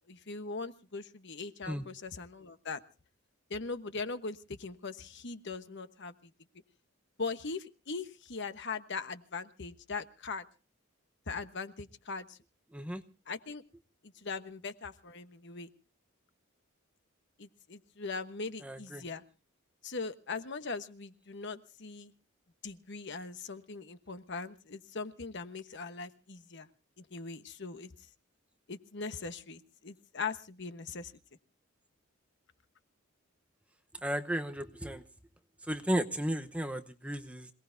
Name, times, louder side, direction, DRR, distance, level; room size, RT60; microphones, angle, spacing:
voice 1, 0.1-2.8 3.5-6.1 7.2-10.4 11.3-12.4 13.3-13.6 14.0-15.7 17.4-19.2 19.8-22.1 22.6-26.7 27.0-27.9 28.7-31.1, left 4 dB, 55° left, 10 dB, 1.1 m, -40 dB
voice 2, 12.7-13.0 18.6-19.0 34.0-35.0 35.6-37.5, equal, 5° right, 7 dB, 0.8 m, -34 dB
27.0 x 18.0 x 2.6 m, 0.34 s
head